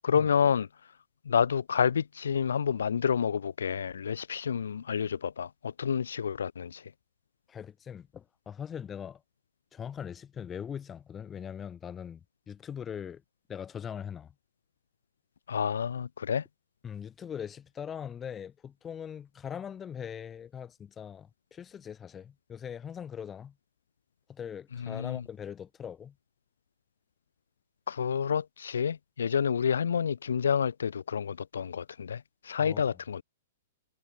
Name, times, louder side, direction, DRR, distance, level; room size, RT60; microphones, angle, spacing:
voice 1, 0.0-0.7 1.3-6.8 15.5-16.4 24.8-25.2 27.9-33.2, left 7 dB, 85° left, 2.1 m, -29 dB
voice 2, 7.5-9.2 9.7-13.2 13.5-14.3 16.8-23.5 24.3-26.1 32.6-32.8, left 8 dB, 15° left, 7.6 m, -41 dB
hypercardioid pair, 140°, 0 cm